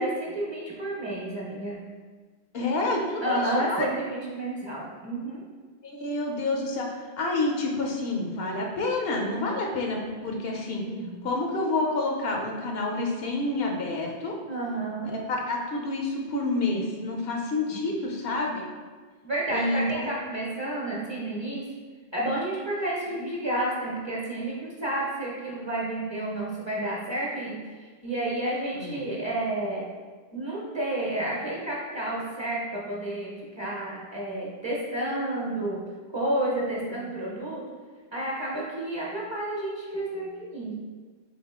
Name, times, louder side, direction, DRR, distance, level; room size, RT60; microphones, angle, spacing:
voice 1, 0.0-1.8 3.2-5.4 10.8-11.2 14.5-15.1 17.7-17.8 19.2-21.6 22.1-27.6 28.0-29.9 30.3-35.8 36.1-37.6 38.1-40.7, right 1 dB, 30° right, -5 dB, 0.8 m, -30 dB
voice 2, 2.5-3.9 5.8-10.8 11.2-14.4 15.0-18.7 19.5-20.1 23.1-23.3 28.7-29.0 37.0-37.1, left 2 dB, 70° left, 0 dB, 0.9 m, -29 dB
3.8 x 3.4 x 3.6 m, 1.4 s
omnidirectional pair, 1.1 m